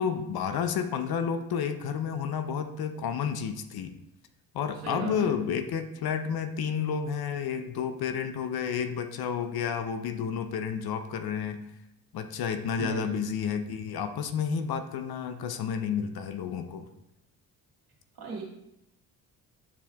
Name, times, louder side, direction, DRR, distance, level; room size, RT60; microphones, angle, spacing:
voice 1, 0.0-4.0 4.5-11.6 12.1-16.9, left 7 dB, 55° left, 8 dB, 0.7 m, -31 dB
voice 2, 4.8-5.3 12.8-13.2 18.2-18.4, right 3 dB, 55° right, -2 dB, 2.2 m, -34 dB
9.7 x 4.4 x 2.4 m, 0.85 s
hypercardioid pair, 55°, 44 cm